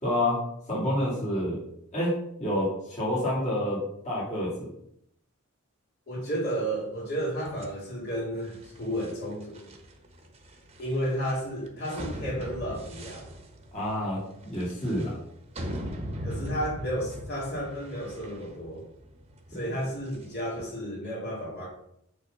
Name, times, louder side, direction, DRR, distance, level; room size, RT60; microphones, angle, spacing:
voice 1, 0.0-0.4 0.7-1.6 1.9-2.1 2.4-4.7 13.7-15.2 19.5-19.6, left 1 dB, 35° left, -7 dB, 2.7 m, -28 dB
voice 2, 6.1-9.7 10.8-13.3 16.2-18.8 19.5-21.7, equal, 50° left, -5 dB, 2.9 m, -32 dB
sound 1, 7.4-20.7, equal, 30° right, 1.1 m, -41 dB
8.9 x 3.8 x 5.3 m, 0.75 s
head